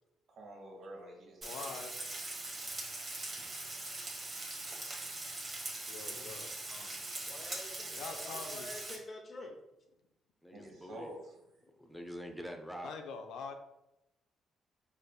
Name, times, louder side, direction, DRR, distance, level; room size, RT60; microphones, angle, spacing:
voice 1, 0.3-1.6 3.4-3.5 10.5-11.2, right 1 dB, 65° right, 0 dB, 1.2 m, -48 dB
voice 2, 1.4-1.9 3.3-4.0 4.5-4.6 5.9-6.5 7.9-8.7 12.8-13.5, left 5 dB, 85° left, 6 dB, 0.4 m, -45 dB
Frying (food), 1.4-8.9, right 2 dB, 35° right, 1.3 m, -41 dB
voice 3, 7.3-9.5, left 1 dB, 35° left, 1 dB, 0.9 m, -48 dB
voice 4, 10.4-11.1 11.8-13.0, equal, ahead, 4 dB, 0.6 m, -45 dB
4.4 x 3.2 x 2.3 m, 0.87 s
cardioid pair, 90°, 0 cm